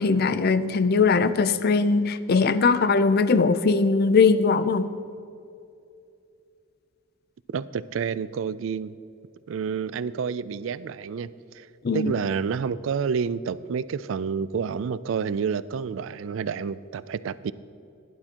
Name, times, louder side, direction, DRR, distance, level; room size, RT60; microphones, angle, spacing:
voice 1, 0.0-4.9 11.8-12.1, left 4 dB, 50° left, 13 dB, 0.4 m, -20 dB
voice 2, 7.5-8.9 9.5-11.3 11.5-11.7 11.9-17.5, right 6 dB, 65° right, 16 dB, 0.3 m, -29 dB
16.0 x 11.0 x 2.9 m, 2.5 s
head